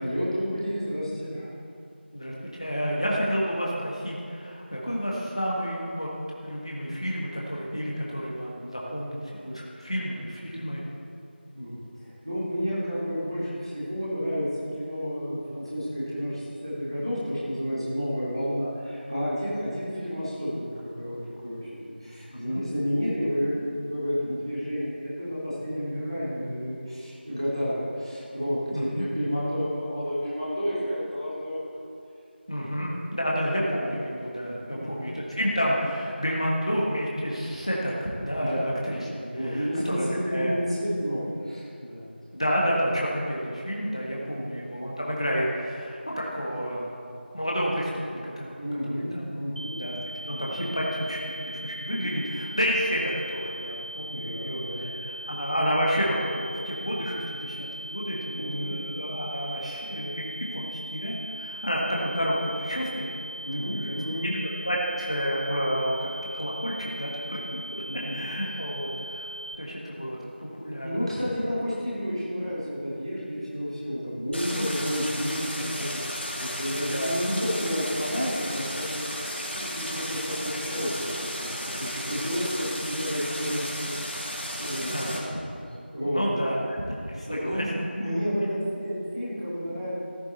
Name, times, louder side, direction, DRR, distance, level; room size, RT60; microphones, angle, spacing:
voice 1, 0.0-1.5 11.5-14.5 14.8-31.7 34.6-34.9 38.4-38.6 39.3-42.0 44.2-44.5 48.6-49.8 52.1-52.2 54.1-54.9 58.3-58.7 63.4-64.4 67.8-68.2 70.8-85.0 85.9-86.5 87.3-89.9, equal, 30° right, -10 dB, 3.4 m, -31 dB
voice 2, 2.1-6.1 6.4-10.8 22.3-22.6 24.2-24.4 28.7-29.1 32.5-40.5 42.3-46.9 47.3-48.4 48.9-49.2 49.7-60.2 60.5-63.1 63.7-64.0 64.6-66.1 66.3-67.8 68.1-69.3 69.6-71.1 74.5-74.7 76.9-77.1 84.9-85.4 86.0-86.8 87.1-87.7, equal, 30° left, -4 dB, 1.6 m, -30 dB
sound 1, 49.6-69.6, right 1 dB, 45° right, 0.5 m, -39 dB
Stream, 74.3-85.2, equal, 70° left, 2.7 m, -34 dB
14.0 x 10.5 x 4.2 m, 2.5 s
figure-of-eight pair, 180°, 6 cm